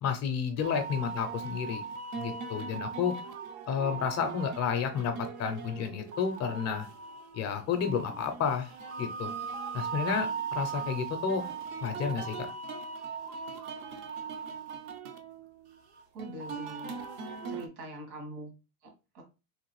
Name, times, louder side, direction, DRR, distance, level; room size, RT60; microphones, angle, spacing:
voice 1, 0.0-1.8 2.2-3.1 3.7-6.9 7.3-8.7 9.0-9.3 9.7-11.5 11.8-12.4, left 7 dB, 40° left, 6 dB, 0.4 m, -31 dB
sound 1, 0.6-17.7, right 5 dB, 45° right, 0.5 m, -39 dB
voice 2, 16.1-16.9 17.5-18.5 19.1-19.2, right 1 dB, 65° right, 2 dB, 1.7 m, -43 dB
3.1 x 2.4 x 3.0 m, 0.30 s
supercardioid pair, 130°, 44 cm